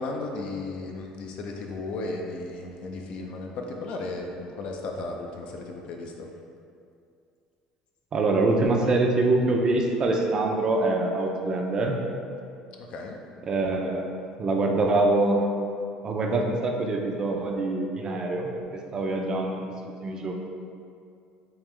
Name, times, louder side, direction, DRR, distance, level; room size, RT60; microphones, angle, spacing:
voice 1, 0.0-6.3 12.8-13.2, left 2 dB, 60° left, 1 dB, 0.5 m, -35 dB
voice 2, 8.1-12.0 13.5-14.1 14.4-15.4 16.0-19.6 20.0-20.3, right 2 dB, 35° right, 1 dB, 0.5 m, -24 dB
3.6 x 2.9 x 3.1 m, 2.4 s
supercardioid pair, 105°, 2 cm